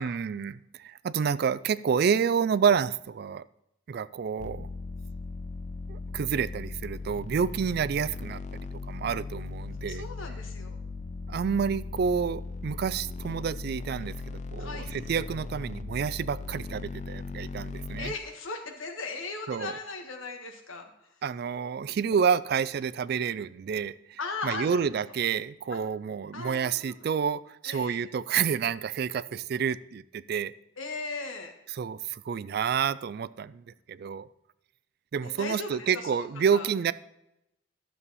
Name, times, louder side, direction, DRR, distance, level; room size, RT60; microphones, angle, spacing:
voice 1, 0.0-3.4 3.9-4.7 5.9-10.1 11.3-18.1 19.5-19.7 21.2-30.5 31.7-33.6 33.9-34.3 35.1-36.9, right 7 dB, 50° right, 18 dB, 0.3 m, -29 dB
sound 1, 4.4-18.2, left 3 dB, 35° left, 0.4 m, -38 dB
voice 2, 9.9-10.8 14.6-14.9 18.0-20.9 24.2-24.9 25.7-25.8 26.3-27.0 27.6-28.0 30.8-31.5 35.2-36.7, left 3 dB, 85° left, 4 dB, 1.5 m, -38 dB
12.5 x 7.1 x 4.1 m, 0.87 s
head